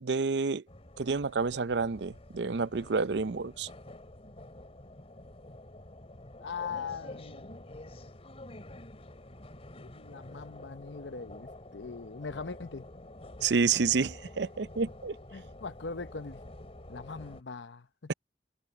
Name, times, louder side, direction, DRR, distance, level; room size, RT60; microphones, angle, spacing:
voice 1, 0.0-0.6 1.0-3.7 13.4-15.2, right 4 dB, 70° right, 0.6 m, -29 dB
sound 1, 0.7-17.4, left 1 dB, 35° left, 3.1 m, -48 dB
voice 2, 6.4-7.8 9.8-12.9 15.3-16.4 16.9-18.1, left 5 dB, 80° left, 0.9 m, -41 dB
head